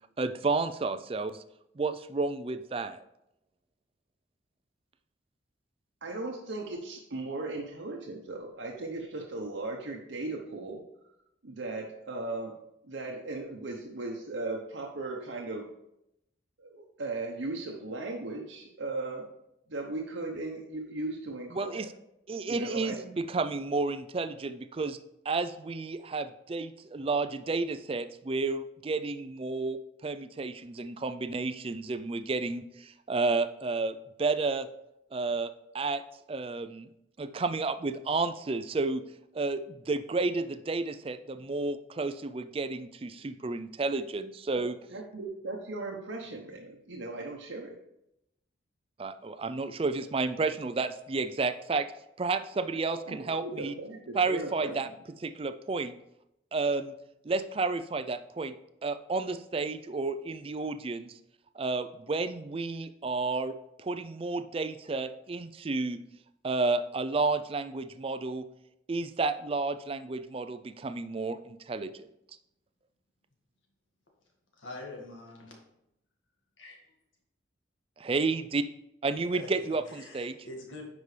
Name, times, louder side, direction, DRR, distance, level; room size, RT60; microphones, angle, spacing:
voice 1, 0.2-1.4 1.8-3.0 21.5-21.9 22.3-25.0 25.3-34.7 35.1-36.0 36.3-36.9 37.2-39.0 39.3-44.8 49.0-51.9 52.2-53.7 54.2-54.9 55.2-56.0 56.5-56.9 57.2-58.5 58.8-61.1 61.6-66.0 66.4-68.4 68.9-71.9 78.0-78.6 79.0-80.3, right 3 dB, 30° right, 11 dB, 0.4 m, -31 dB
voice 2, 6.0-10.8 11.4-12.5 12.8-15.6 16.6-19.2 19.7-21.9 22.5-23.1 44.5-44.6 44.9-47.8 53.1-54.7, right 2 dB, 80° right, -1 dB, 0.9 m, -37 dB
voice 3, 74.6-75.5 76.6-76.8 79.3-80.9, left 2 dB, 85° left, 0 dB, 1.9 m, -44 dB
9.6 x 5.3 x 3.3 m, 0.82 s
head